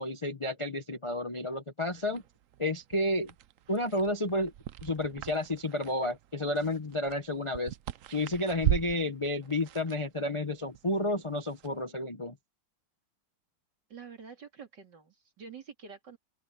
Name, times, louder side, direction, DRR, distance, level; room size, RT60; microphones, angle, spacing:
voice 1, 0.0-2.2 2.6-3.3 3.7-4.5 4.8-7.8 8.1-12.4, left 1 dB, 25° left, 0.6 m, -31 dB
sound 1, 1.9-11.8, right 12 dB, 85° right, 0.7 m, -39 dB
voice 2, 13.9-16.2, right 6 dB, 60° right, 3.5 m, -47 dB
open air
omnidirectional pair, 2.1 m